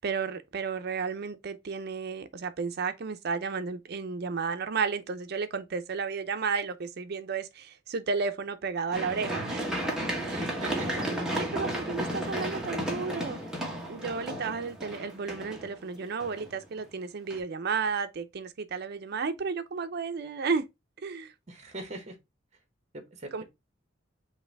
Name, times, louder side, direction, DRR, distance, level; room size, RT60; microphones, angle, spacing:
voice 1, 0.0-9.7 10.2-10.5 10.9-11.0 11.3-13.4 13.9-20.7 21.0-21.3 23.3-23.4, right 5 dB, 55° right, 0.5 m, -33 dB
Run, 8.9-16.8 17.3-17.4, right 1 dB, 5° right, 1.1 m, -33 dB
voice 2, 10.3-11.5 21.5-22.2 22.9-23.4, right 2 dB, 35° right, 1.1 m, -41 dB
5.5 x 2.6 x 3.3 m
head